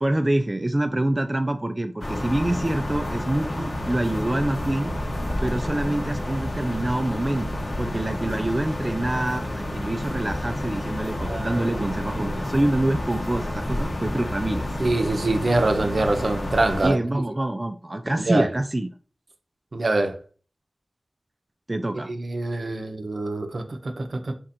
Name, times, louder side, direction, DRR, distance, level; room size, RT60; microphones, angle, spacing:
voice 1, 0.0-4.9 5.4-14.7 16.8-18.9 21.7-22.1, right 1 dB, 25° right, 0.3 m, -26 dB
sound 1, 2.0-16.9, left 1 dB, 55° left, 0.9 m, -30 dB
voice 2, 11.3-12.4 14.8-17.2 18.3-18.5 19.7-20.2 22.1-24.3, right 2 dB, 65° right, 0.6 m, -25 dB
4.3 x 4.2 x 2.5 m
wide cardioid pair, 80°, 0 cm